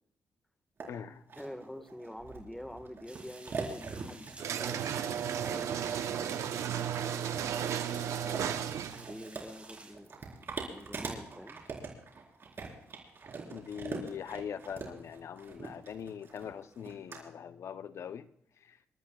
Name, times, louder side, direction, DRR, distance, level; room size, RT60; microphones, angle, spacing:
voice 1, 0.8-1.2 13.5-18.3 18.7-18.8, left 8 dB, 65° left, 12 dB, 0.7 m, -42 dB
sound 1, 0.8-0.9 1.3-17.2, right 4 dB, 50° right, 4.4 m, -43 dB
voice 2, 1.4-6.0 7.9-10.4 10.7-11.6, equal, 5° left, 8 dB, 1.5 m, -47 dB
sound 2, 3.1-9.9, right 3 dB, 25° right, 5.6 m, -53 dB
sound 3, 4.4-9.1, right 9 dB, 80° right, 0.8 m, -34 dB
27.5 x 13.5 x 2.4 m, 0.70 s
cardioid pair, 80°, 5 cm